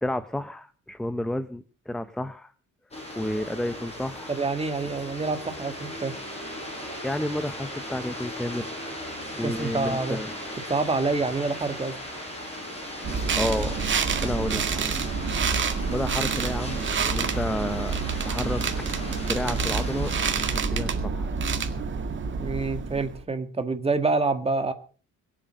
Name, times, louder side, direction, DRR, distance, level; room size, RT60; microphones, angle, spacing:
voice 1, 0.0-2.5 3.2-4.3 7.0-8.7 9.3-10.3 13.1-13.8 14.2-14.9 15.9-17.9 18.2-18.6 19.3-20.1 20.5-21.3, left 1 dB, ahead, 12 dB, 0.7 m, -31 dB
sound 1, 2.9-20.6, left 1 dB, 20° left, 6.6 m, -37 dB
voice 2, 4.3-6.1 9.4-10.2 10.7-12.0 22.4-24.7, right 3 dB, 20° right, 8 dB, 1.9 m, -27 dB
sound 2, 13.0-23.2, right 5 dB, 35° right, 1.9 m, -28 dB
22.0 x 7.8 x 6.4 m, 0.40 s
cardioid pair, 145°, 32 cm